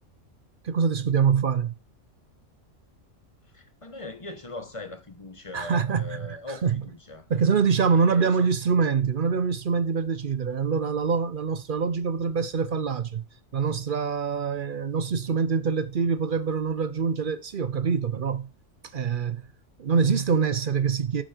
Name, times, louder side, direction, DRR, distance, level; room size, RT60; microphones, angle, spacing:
voice 1, 0.6-1.7 5.5-6.8 7.3-13.2 13.5-18.5 18.9-19.5 19.8-21.2, right 6 dB, 50° right, 0.7 m, -25 dB
voice 2, 3.5-7.3 7.9-8.5, left 2 dB, 25° left, 1.2 m, -40 dB
8.7 x 7.8 x 4.4 m
omnidirectional pair, 1.3 m